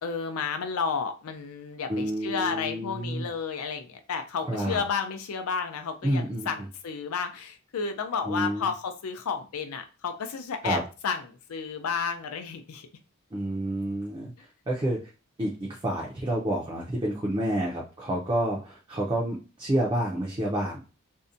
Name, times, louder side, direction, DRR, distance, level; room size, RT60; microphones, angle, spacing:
voice 1, 0.0-12.9, left 5 dB, 90° left, 7 dB, 0.5 m, -32 dB
voice 2, 1.9-3.3 4.4-4.8 6.0-6.5 8.2-8.7 10.6-10.8 13.3-14.3 14.7-15.1 15.4-20.8, right 1 dB, 20° right, -3 dB, 0.4 m, -29 dB
2.6 x 2.1 x 2.5 m, 0.33 s
head